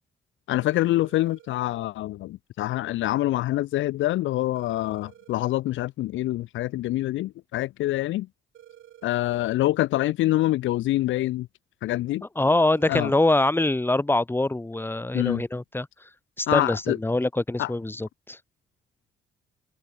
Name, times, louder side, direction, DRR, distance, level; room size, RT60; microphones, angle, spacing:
voice 1, 0.5-8.3 9.0-11.5 11.8-12.3 12.9-13.1 15.1-15.4 16.5-17.0 17.6-17.7, left 16 dB, 75° left, 0.5 m, -25 dB
sound 1, 0.5-1.6 4.5-5.6 8.5-9.6 12.5-13.6, right 12 dB, 75° right, 6.8 m, -51 dB
voice 2, 12.4-15.9 16.4-18.4, left 2 dB, 10° left, 1.5 m, -24 dB
cardioid pair, 90°, 20 cm